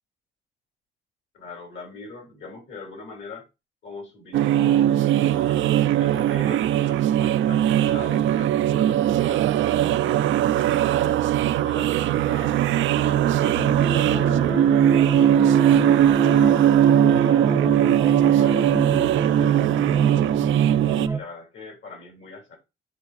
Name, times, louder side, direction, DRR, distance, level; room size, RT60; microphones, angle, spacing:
voice 1, 1.3-3.4 3.8-11.2 11.6-13.7 14.0-14.5 14.9-15.5 16.0-18.8 19.2-19.6 19.9-20.3 20.8-22.6, left 3 dB, 70° left, 2.8 m, -42 dB
sound 1, 4.3-21.1, right 11 dB, 75° right, 0.5 m, -20 dB
sound 2, 12.6-21.2, right 4 dB, 10° right, 0.5 m, -25 dB
11.0 x 4.2 x 2.4 m
cardioid pair, 90°, 20 cm